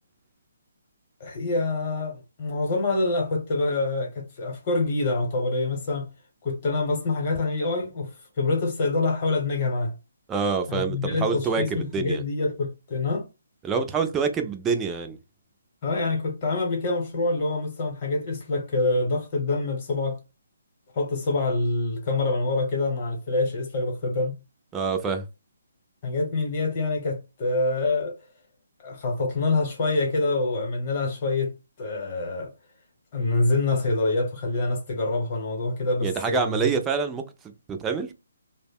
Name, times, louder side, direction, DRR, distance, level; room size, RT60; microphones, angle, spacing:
voice 1, 1.2-6.1 6.4-8.1 8.4-9.9 10.7-13.3 15.8-20.2 20.9-24.4 26.0-28.2 28.8-31.5 31.8-32.5 33.1-36.7, left 3 dB, 30° left, 0.8 m, -26 dB
voice 2, 10.3-12.2 13.6-15.2 24.7-25.3 36.0-37.2 37.7-38.1, right 5 dB, 10° right, 0.3 m, -26 dB
2.1 x 2.0 x 3.4 m
hypercardioid pair, 165°, 0 cm